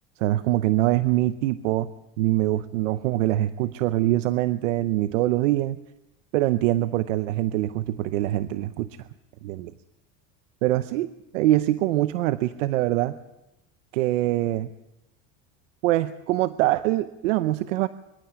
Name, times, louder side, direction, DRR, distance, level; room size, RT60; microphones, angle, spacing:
voice 1, 0.2-1.9 2.2-5.8 6.3-9.1 9.4-9.7 10.6-11.1 11.3-13.2 13.9-14.7 15.8-17.9, right 15 dB, 90° right, 12 dB, 0.8 m, -24 dB
24.0 x 12.0 x 10.0 m, 0.93 s
supercardioid pair, 100°, 36 cm